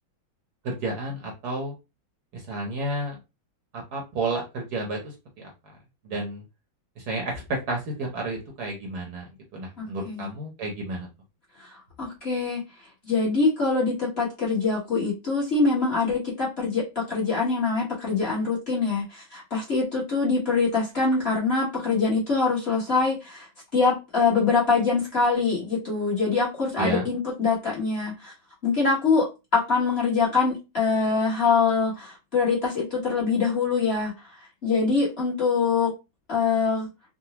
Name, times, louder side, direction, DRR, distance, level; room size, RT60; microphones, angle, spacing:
voice 1, 0.6-1.7 2.3-3.2 3.9-5.5 6.0-6.4 7.0-9.3 9.5-11.1 26.8-27.1, right 2 dB, 65° right, 0 dB, 1.2 m, -31 dB
voice 2, 9.8-10.3 11.6-12.6 13.0-23.5 23.7-28.3 28.6-29.3 29.5-34.1 34.6-35.9 36.3-36.9, left 4 dB, 40° left, -6 dB, 1.2 m, -24 dB
3.9 x 2.0 x 2.8 m, 0.26 s
omnidirectional pair, 2.2 m